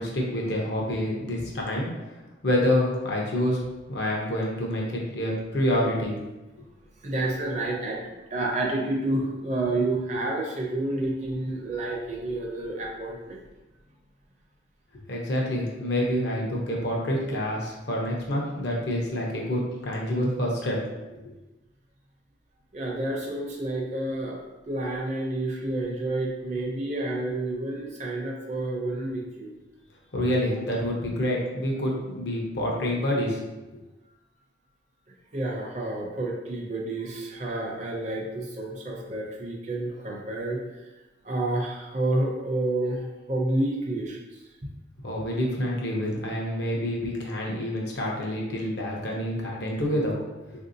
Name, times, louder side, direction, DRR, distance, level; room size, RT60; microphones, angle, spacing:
voice 1, 0.0-1.9 2.4-3.6 3.9-6.2 15.1-21.3 30.1-33.4 45.0-50.2, left 1 dB, 60° left, -2 dB, 0.7 m, -27 dB
voice 2, 7.0-8.0 8.3-13.4 22.7-24.4 24.7-29.5 35.3-40.6 41.2-44.7, right 2 dB, 35° right, -1 dB, 0.5 m, -29 dB
3.4 x 2.6 x 2.6 m, 1.1 s
head